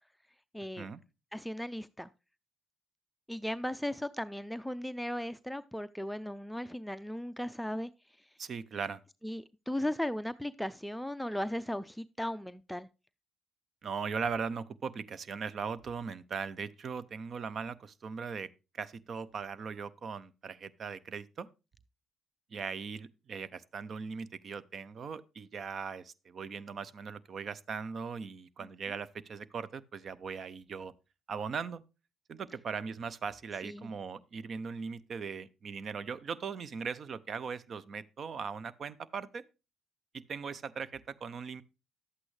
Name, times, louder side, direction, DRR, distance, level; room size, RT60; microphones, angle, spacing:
voice 1, 0.5-0.9 1.3-2.1 3.3-7.9 8.2-8.3 9.2-12.9 28.6-28.7 33.6-33.9, left 1 dB, 5° left, 0.4 m, -37 dB
voice 2, 8.4-9.0 13.8-18.5 18.7-21.5 22.5-30.9 31.3-31.8 32.3-39.4 40.1-41.6, right 5 dB, 50° right, 0.6 m, -39 dB
11.0 x 8.3 x 3.2 m
supercardioid pair, 65°, 0 cm